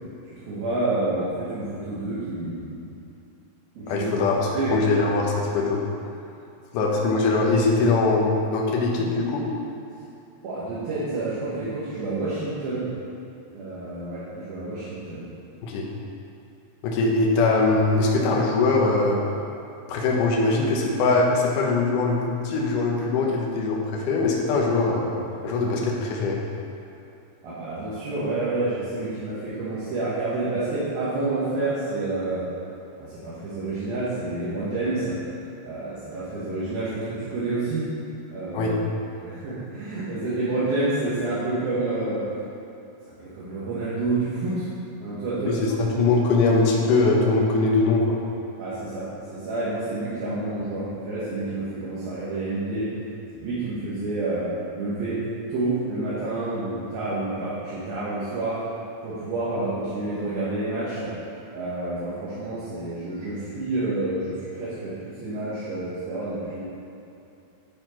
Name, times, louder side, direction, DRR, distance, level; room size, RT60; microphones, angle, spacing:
voice 1, 0.3-2.8 3.8-4.1 4.5-4.8 10.4-12.9 13.5-15.2 27.4-32.5 33.0-35.2 35.6-37.9 38.3-38.8 39.2-42.3 43.1-44.7 45.0-45.5 45.9-46.0 48.6-52.9 53.3-54.5 54.8-55.2 55.5-58.6 59.0-61.1 61.5-66.6, right 2 dB, 75° right, -12 dB, 3.2 m, -29 dB
voice 2, 3.9-4.4 4.7-5.8 6.7-9.5 15.6-15.9 16.8-19.2 19.9-25.2 25.4-26.4 38.5-38.8 45.5-48.2, left 3 dB, 70° left, -2 dB, 2.3 m, -22 dB
12.0 x 4.4 x 4.4 m, 2.7 s
omnidirectional pair, 4.4 m